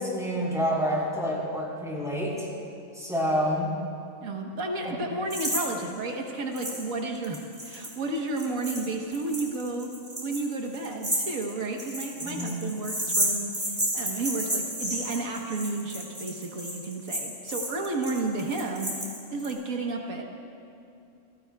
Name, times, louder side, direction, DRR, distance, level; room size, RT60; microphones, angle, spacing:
voice 1, 0.0-2.5 2.9-3.7 4.8-5.0 12.2-12.5, equal, ahead, -5 dB, 4.1 m, -28 dB
voice 2, 4.2-9.9 10.2-20.2, right 2 dB, 85° right, 1 dB, 1.6 m, -32 dB
sound 1, 5.3-5.6 5.9-6.0 6.6-6.8 7.1-19.5, right 1 dB, 35° right, 3.6 m, -32 dB
28.0 x 17.0 x 2.3 m, 2.7 s
omnidirectional pair, 1.4 m